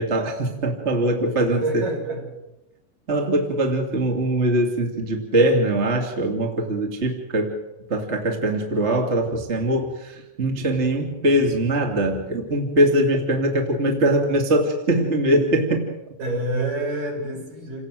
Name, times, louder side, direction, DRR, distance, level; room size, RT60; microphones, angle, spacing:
voice 1, 0.0-1.8 3.1-7.6 7.9-15.8, right 1 dB, 20° right, 1 dB, 2.4 m, -22 dB
voice 2, 1.6-2.3 16.2-17.8, right 2 dB, 50° right, -1 dB, 8.7 m, -27 dB
29.5 x 18.0 x 7.9 m, 0.97 s
omnidirectional pair, 4.9 m